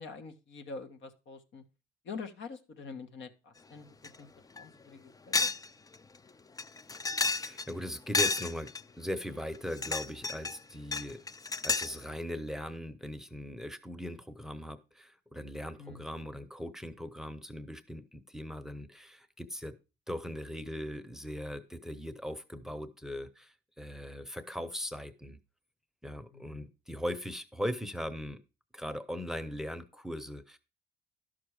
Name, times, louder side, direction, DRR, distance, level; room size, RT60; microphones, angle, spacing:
voice 1, 0.0-1.6 2.0-4.3 4.5-5.5 15.8-16.0 26.3-26.7, left 4 dB, 70° left, 6 dB, 1.5 m, -45 dB
sound 1, 4.0-4.2 4.6-4.7 5.3-5.7 5.9-6.0 6.6-7.7 8.1-8.8 9.6-10.6 10.9-12.0, left 3 dB, 20° left, 0.4 m, -31 dB
voice 2, 7.3-11.2 11.6-19.8 20.1-25.4 26.0-28.4 28.7-30.6, equal, ahead, 13 dB, 0.8 m, -39 dB
11.5 x 6.0 x 4.9 m, 0.30 s
cardioid pair, 90°, 20 cm